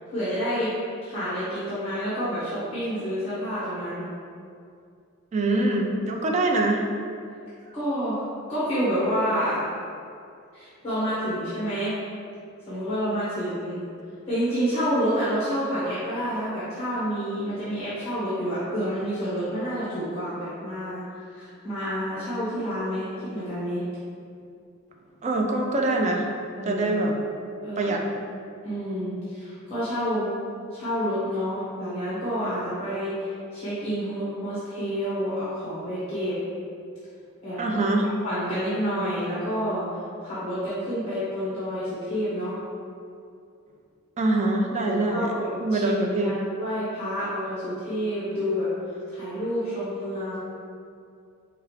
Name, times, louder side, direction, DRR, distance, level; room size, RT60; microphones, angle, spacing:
voice 1, 0.1-0.7 1.0-4.1 7.7-8.2 8.5-9.6 10.5-11.9 12.7-13.8 14.3-21.0 21.3-23.8 26.6-26.9 27.6-28.0 28.6-30.3 30.7-36.4 37.4-37.8 38.2-39.9 40.2-42.6 44.8-45.9 46.2-48.7 49.1-50.4, equal, 30° left, -12 dB, 1.0 m, -29 dB
voice 2, 5.3-6.8 25.2-26.3 26.6-27.1 27.8-28.0 37.6-38.1 44.2-45.3 45.6-46.4, right 2 dB, 35° right, 1 dB, 0.4 m, -24 dB
4.8 x 2.4 x 3.1 m, 2.4 s
head